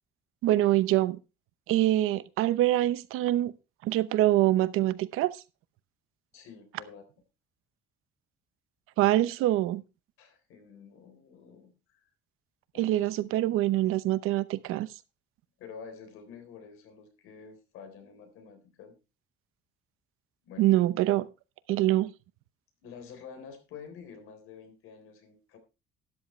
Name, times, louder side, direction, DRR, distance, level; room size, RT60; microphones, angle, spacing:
voice 1, 0.4-1.2 1.7-3.5 3.8-5.4 9.0-9.8 12.8-14.9 20.6-21.3 21.7-22.1, right 15 dB, 85° right, 0.8 m, -25 dB
voice 2, 6.3-7.0 10.2-12.1 12.7-13.0 15.6-19.0 20.4-20.8 22.8-25.6, left 6 dB, 90° left, 3.7 m, -48 dB
12.5 x 10.5 x 3.2 m
cardioid pair, 175°, 21 cm